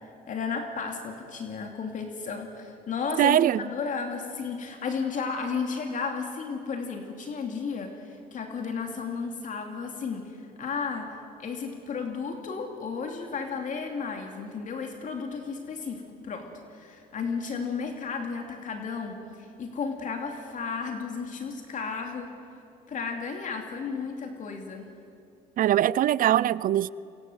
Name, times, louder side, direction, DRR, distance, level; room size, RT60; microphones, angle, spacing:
voice 1, 0.3-3.4 3.6-11.1 11.4-22.3 22.9-24.9, left 5 dB, 50° left, 2.8 m, -33 dB
voice 2, 3.2-3.7 25.6-26.9, right 12 dB, 55° right, 0.5 m, -22 dB
27.5 x 24.0 x 8.0 m
cardioid pair, 110°, 17 cm